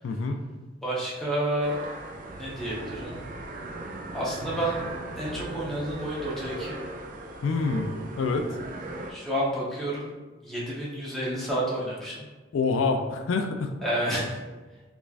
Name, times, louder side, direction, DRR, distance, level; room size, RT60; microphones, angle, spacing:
voice 1, 0.0-0.4 7.4-8.4 12.5-13.8, left 4 dB, 85° left, 5 dB, 0.3 m, -26 dB
voice 2, 0.8-1.8 2.4-3.3 4.1-4.8 5.2-6.8 9.1-10.1 10.4-12.3 13.8-14.4, right 1 dB, ahead, -7 dB, 0.9 m, -30 dB
sound 1, 1.6-9.1, right 2 dB, 45° right, 0.3 m, -38 dB
3.4 x 3.0 x 2.4 m, 1.2 s
head